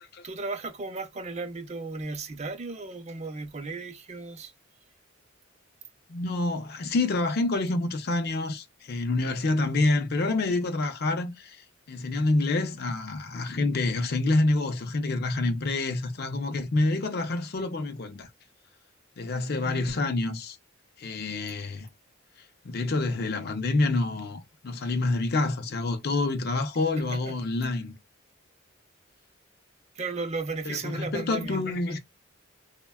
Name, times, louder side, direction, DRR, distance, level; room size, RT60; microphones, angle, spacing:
voice 1, 0.2-4.5 19.6-20.2 27.0-27.4 30.0-31.8, right 3 dB, 35° right, 0.5 m, -35 dB
voice 2, 6.1-18.3 19.2-20.6 21.0-21.9 22.6-27.9 30.7-32.0, left 2 dB, 50° left, 0.5 m, -27 dB
3.4 x 2.1 x 2.2 m
head